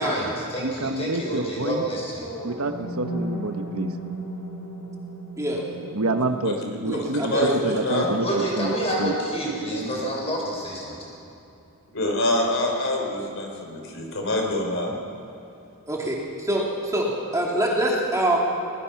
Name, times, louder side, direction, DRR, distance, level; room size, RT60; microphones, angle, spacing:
voice 1, 0.0-2.3 8.2-11.1, right 1 dB, 30° left, -2 dB, 5.6 m, -28 dB
voice 2, 0.6-1.8 2.4-3.9 5.9-8.7 9.0-9.2, right 2 dB, 70° right, 7 dB, 1.1 m, -27 dB
sound 1, 2.1-10.1, right 1 dB, 5° left, 6.1 m, -37 dB
voice 3, 5.4-5.7 6.9-7.7 15.9-18.4, right 1 dB, 15° right, -3 dB, 2.9 m, -25 dB
voice 4, 6.9-8.1 9.7-9.9 11.9-14.9, left 1 dB, 60° left, 1 dB, 3.8 m, -25 dB
22.0 x 20.0 x 5.9 m, 2.8 s
head